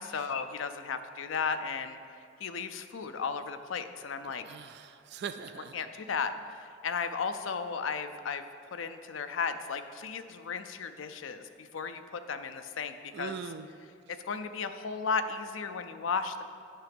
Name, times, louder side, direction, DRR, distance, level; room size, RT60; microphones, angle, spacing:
voice 1, 0.0-2.0 2.4-4.4 5.7-8.5 8.7-13.4 14.1-16.4, left 5 dB, 80° left, 9 dB, 0.5 m, -35 dB
voice 2, 4.3-5.8 13.1-13.7, right 6 dB, 55° right, 10 dB, 0.3 m, -41 dB
8.8 x 5.7 x 5.2 m, 2.5 s
head